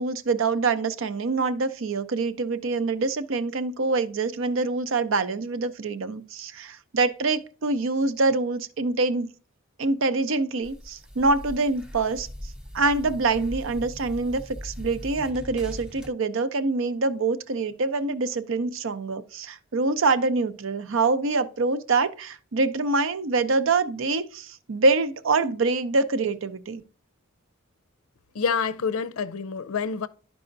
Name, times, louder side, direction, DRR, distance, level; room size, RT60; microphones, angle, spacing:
voice 1, 0.0-9.3 9.8-12.3 12.7-26.8, right 3 dB, 65° right, 0.6 m, -25 dB
sound 1, 10.6-16.1, equal, 5° right, 0.5 m, -40 dB
voice 2, 28.3-30.1, left 6 dB, 80° left, 0.5 m, -27 dB
11.5 x 4.8 x 2.6 m
head